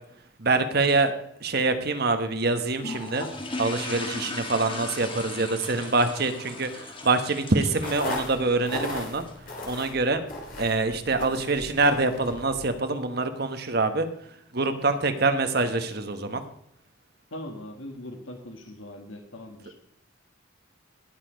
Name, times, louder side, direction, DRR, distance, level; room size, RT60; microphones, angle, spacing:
voice 1, 0.4-1.1 1.4-3.3 3.6-9.2 9.6-10.2 10.6-14.1 14.5-16.4, right 3 dB, 50° right, 8 dB, 1.2 m, -25 dB
sound 1, 2.8-9.3, left 2 dB, 25° left, 1.5 m, -38 dB
sound 2, 7.7-12.8, left 1 dB, 40° left, 3.0 m, -37 dB
voice 2, 17.3-19.7, left 1 dB, 75° left, 5 dB, 1.6 m, -40 dB
18.5 x 6.7 x 5.1 m, 0.72 s
head